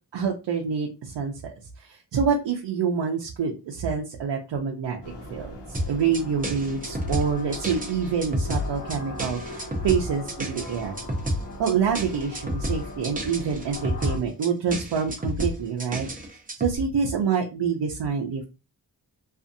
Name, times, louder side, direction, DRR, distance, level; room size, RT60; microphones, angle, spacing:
voice 1, 0.1-5.0 5.3-11.0 11.6-18.4, right 6 dB, 85° right, 0 dB, 0.6 m, -27 dB
sound 1, 5.0-14.2, left 1 dB, 85° left, 0.9 m, -39 dB
sound 2, 5.7-16.8, equal, 20° right, 0.5 m, -30 dB
2.6 x 2.4 x 2.5 m, 0.29 s
wide cardioid pair, 160°, 42 cm